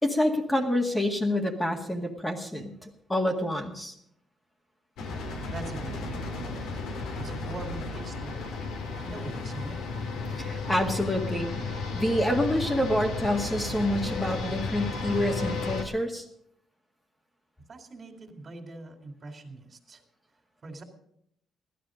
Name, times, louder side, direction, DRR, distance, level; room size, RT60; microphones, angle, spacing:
voice 1, 0.0-3.9 10.4-11.5 11.9-16.2, left 1 dB, 10° left, 2 dB, 1.9 m, -27 dB
sound 1, 5.0-15.8, left 3 dB, 85° left, 2.4 m, -33 dB
voice 2, 5.5-6.8 7.2-8.4 9.0-9.8 17.7-20.0 20.6-20.8, right 2 dB, 40° right, 6 dB, 2.9 m, -42 dB
15.5 x 12.5 x 5.2 m, 0.72 s
cardioid pair, 90°, 0 cm